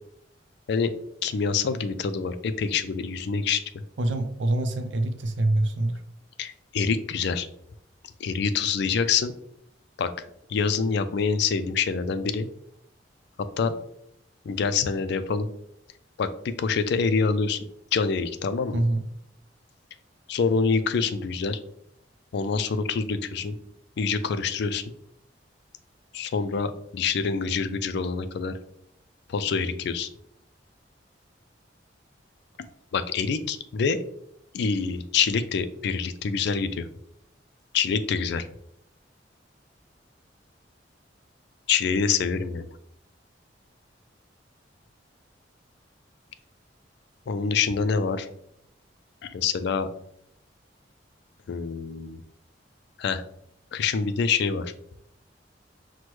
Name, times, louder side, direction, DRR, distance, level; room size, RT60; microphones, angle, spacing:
voice 1, 1.2-3.6 6.4-7.5 8.2-9.3 10.0-10.1 10.5-12.5 13.6-13.7 14.5-15.5 16.2-17.7 17.9-18.8 20.3-21.6 22.3-23.5 24.0-24.8 26.1-28.6 29.3-30.1 32.9-34.0 34.5-36.9 37.7-38.5 41.7-42.7 47.3-48.3 49.3-49.9 51.5-52.2 53.0-53.2 53.7-54.7, left 5 dB, 65° left, 11 dB, 0.4 m, -26 dB
voice 2, 4.0-6.0 18.7-19.0, right 1 dB, 80° right, 8 dB, 0.6 m, -25 dB
6.0 x 2.2 x 3.0 m, 0.73 s
head